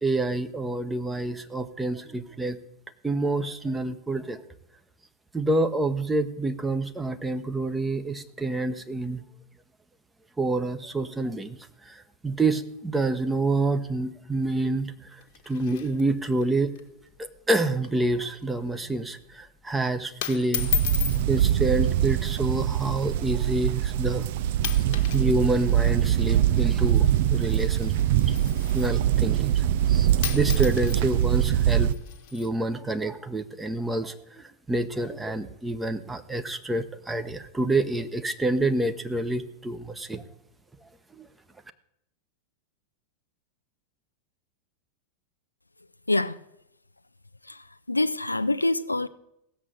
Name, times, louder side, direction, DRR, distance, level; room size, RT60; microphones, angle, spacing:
voice 1, 0.0-2.6 3.0-4.4 5.3-9.2 10.4-15.2 15.5-16.7 17.2-20.7 21.3-24.3 24.9-27.9 28.3-28.4 28.7-31.9 32.3-40.2 41.1-41.3, right 2 dB, 10° right, 1.0 m, -28 dB
sound 1, 15.2-16.5 16.7-16.8 17.1-17.4 17.8-18.1 18.4-18.7 19.5-19.7 20.2-21.2 22.2-22.5 23.2-23.3 24.0-24.2 24.5-25.3 25.5-29.0 29.9-30.0 30.2-32.5, left 10 dB, 50° left, 1.2 m, -35 dB
sound 2, 20.6-31.9, right 11 dB, 50° right, 0.5 m, -23 dB
voice 2, 47.9-49.1, left 2 dB, 85° left, 0.5 m, -25 dB
16.0 x 7.4 x 8.1 m
figure-of-eight pair, 90°, 0 cm